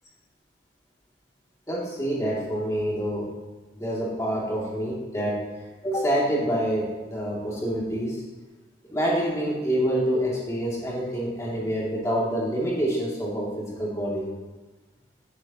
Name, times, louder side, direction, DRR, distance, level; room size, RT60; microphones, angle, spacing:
voice 1, 1.7-3.3 3.7-5.4 5.8-8.2 8.9-14.3, equal, 20° left, -5 dB, 3.1 m, -27 dB
14.5 x 9.6 x 3.2 m, 1.2 s
head